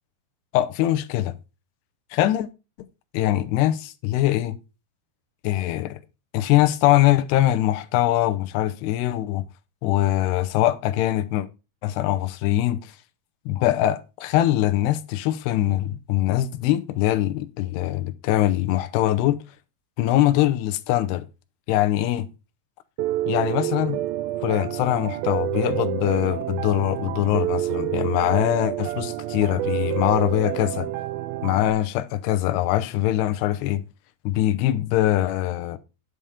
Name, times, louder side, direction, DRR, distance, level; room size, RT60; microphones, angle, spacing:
voice 1, 0.5-1.3 2.1-2.5 3.1-4.6 5.4-6.0 6.3-9.5 9.8-11.5 11.8-12.9 13.5-19.4 20.0-21.2 21.7-22.3 23.3-24.0 24.4-30.9 31.4-33.8 34.3-35.8, left 14 dB, 80° left, 2.8 m, -22 dB
Piano, 23.0-31.7, right 14 dB, 85° right, 2.1 m, -28 dB
10.5 x 5.6 x 5.0 m
omnidirectional pair, 4.7 m